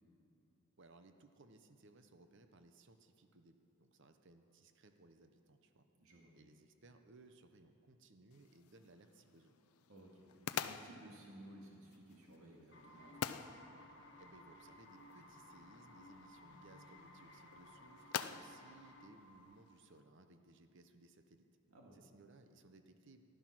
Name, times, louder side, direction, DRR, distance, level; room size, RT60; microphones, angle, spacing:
voice 1, 0.8-5.8 6.3-9.6 14.2-21.4 21.9-23.3, right 2 dB, 55° right, 7 dB, 0.8 m, -63 dB
voice 2, 6.0-6.3 9.9-13.3 21.7-22.0, right 1 dB, 75° right, -2 dB, 2.1 m, -57 dB
sound 1, 8.3-20.0, left 8 dB, 80° left, 0.5 m, -49 dB
sound 2, 12.7-19.6, left 1 dB, 55° left, 1.3 m, -58 dB
15.0 x 11.5 x 6.1 m, 3.0 s
head